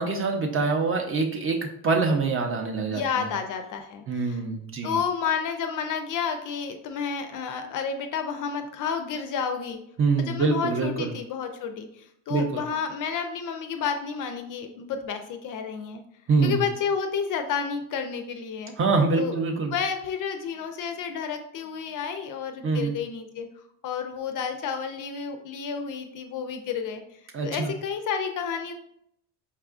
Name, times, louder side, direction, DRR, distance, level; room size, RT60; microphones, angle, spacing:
voice 1, 0.0-3.3 4.1-5.0 10.0-11.1 12.3-12.6 16.3-16.6 18.8-19.7 22.6-23.0 27.3-27.7, right 4 dB, 30° right, 2 dB, 0.5 m, -25 dB
voice 2, 2.9-4.4 4.8-9.8 10.2-16.0 16.4-18.7 19.2-19.3 19.7-23.5 23.8-28.7, left 6 dB, 50° left, 6 dB, 0.4 m, -31 dB
4.5 x 2.4 x 2.4 m, 0.74 s
cardioid pair, 105°, 43 cm